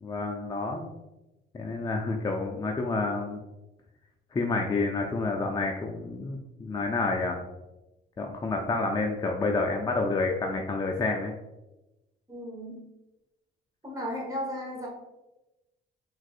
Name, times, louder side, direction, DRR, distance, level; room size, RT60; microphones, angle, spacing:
voice 1, 0.0-0.9 1.5-3.4 4.3-7.4 8.2-11.3, left 3 dB, 20° left, 1 dB, 0.3 m, -29 dB
voice 2, 12.3-12.9 13.8-14.9, equal, 15° right, -3 dB, 1.1 m, -35 dB
4.0 x 2.5 x 2.4 m, 1.0 s
cardioid pair, 90°, 20 cm